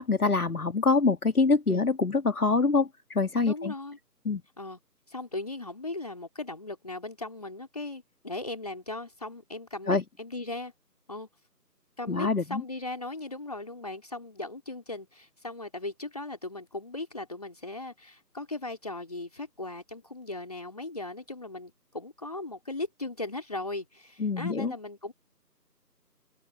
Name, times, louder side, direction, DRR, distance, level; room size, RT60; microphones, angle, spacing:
voice 1, 0.0-3.7 4.2-4.4 9.9-10.0 12.1-12.6 24.2-24.7, left 4 dB, 60° left, 2.3 m, -25 dB
voice 2, 3.4-4.0 4.6-4.8 5.1-10.7 11.1-11.3 12.0-25.1, left 2 dB, 25° left, 3.9 m, -38 dB
open air
figure-of-eight pair, 175°, 49 cm